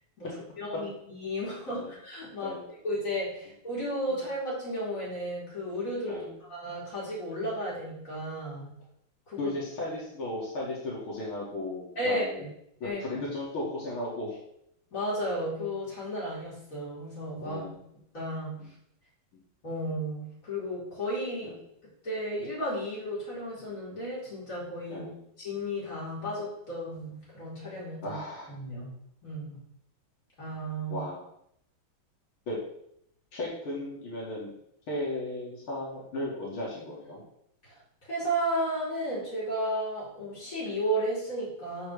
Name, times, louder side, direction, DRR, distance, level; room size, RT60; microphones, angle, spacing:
voice 1, 0.6-2.6 2.8-8.7 9.3-9.5 12.0-12.5 12.8-13.0 14.9-17.8 18.1-18.7 19.6-21.6 22.0-25.1 25.4-28.2 28.5-29.0 29.2-29.6 30.4-31.1 37.6-37.7 38.0-41.9, equal, 40° left, -8 dB, 4.3 m, -33 dB
voice 2, 9.4-12.4 12.8-14.4 17.4-17.8 18.6-18.7 21.4-21.6 24.9-25.2 28.0-28.5 30.9-31.2 32.5-32.6 33.3-34.5 34.9-37.2, left 1 dB, 85° left, -6 dB, 3.1 m, -35 dB
9.2 x 6.9 x 3.4 m, 0.72 s
omnidirectional pair, 2.3 m